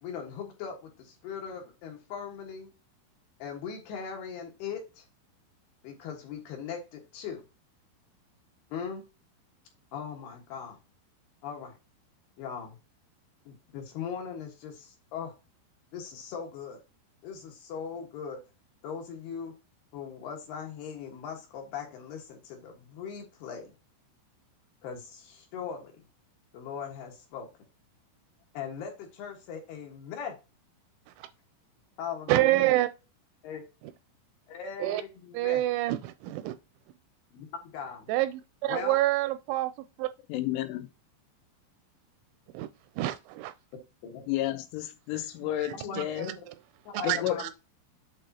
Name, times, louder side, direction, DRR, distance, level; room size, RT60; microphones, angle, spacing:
voice 1, 0.0-2.7 3.4-5.0 5.8-7.4 8.7-9.0 9.9-10.8 11.4-11.8 12.4-12.8 13.5-15.3 15.9-16.8 17.2-18.4 18.8-19.5 19.9-23.7 24.8-25.9 26.5-27.5 28.5-30.4 32.0-32.5 33.4-33.6 34.5-35.6 37.3-38.1 38.7-39.0 44.0-44.2 45.7-46.3 46.9-47.5, left 7 dB, 65° left, 3.1 m, -39 dB
voice 2, 32.3-32.9 34.8-35.0 35.3-36.6 38.1-39.7 40.0-40.1 42.5-42.7 43.0-43.5 45.6-46.4 46.9-47.5, right 16 dB, 85° right, 2.8 m, -27 dB
voice 3, 40.3-40.9 44.3-46.3 47.0-47.5, left 13 dB, 90° left, 3.4 m, -31 dB
8.2 x 6.4 x 2.8 m
omnidirectional pair, 5.7 m